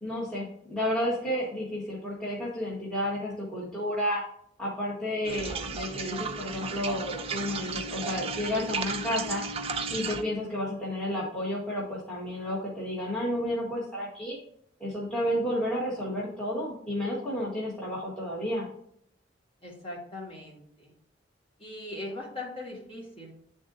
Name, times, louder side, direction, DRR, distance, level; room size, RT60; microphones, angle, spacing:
voice 1, 0.0-4.2 4.6-9.4 9.9-14.4 14.8-18.7, left 1 dB, 5° left, -8 dB, 1.3 m, -31 dB
sound 1, 5.2-10.2, right 4 dB, 35° right, 0.4 m, -34 dB
voice 2, 19.6-20.9 21.6-23.3, left 2 dB, 30° left, -3 dB, 1.9 m, -40 dB
9.7 x 3.7 x 2.6 m, 0.69 s
head